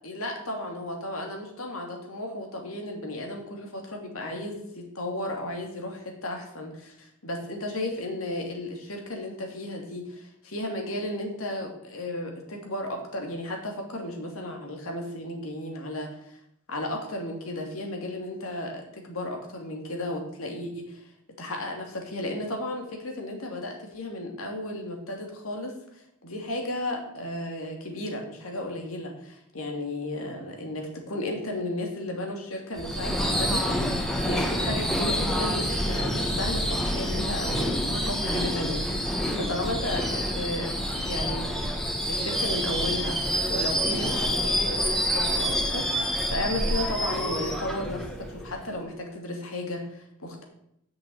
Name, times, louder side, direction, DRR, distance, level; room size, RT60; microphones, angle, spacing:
voice 1, 0.0-16.4 16.7-21.0 21.4-34.0 34.2-41.5 42.1-50.4, left 1 dB, 80° left, 2 dB, 2.8 m, -34 dB
Subway metro underground / Screech, 32.8-48.7, equal, ahead, 1.3 m, -27 dB
7.7 x 7.1 x 7.8 m, 0.76 s
head